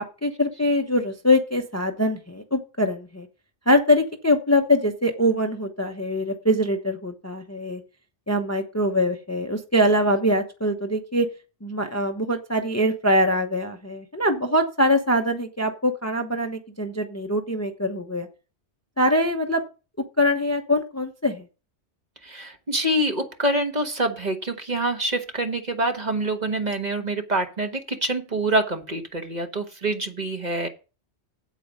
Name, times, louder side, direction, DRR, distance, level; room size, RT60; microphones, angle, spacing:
voice 1, 0.0-3.3 3.7-7.8 8.3-11.3 11.6-18.3 19.0-19.6 20.2-21.4, left 1 dB, 15° left, 5 dB, 0.9 m, -23 dB
voice 2, 22.2-30.7, right 1 dB, 35° right, 5 dB, 1.4 m, -26 dB
8.5 x 8.4 x 5.3 m, 0.32 s
omnidirectional pair, 1.3 m